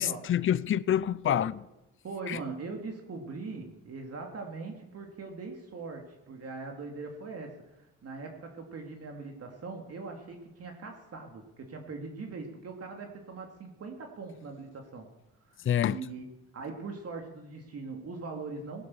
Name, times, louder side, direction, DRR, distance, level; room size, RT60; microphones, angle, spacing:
voice 1, 0.0-1.6 2.3-2.4 15.6-16.0, left 10 dB, 45° left, 0.6 m, -27 dB
voice 2, 2.0-15.1 15.5-16.2 16.5-18.9, right 4 dB, 55° right, 2.8 m, -41 dB
17.5 x 11.0 x 7.2 m
cardioid pair, 90°, 30 cm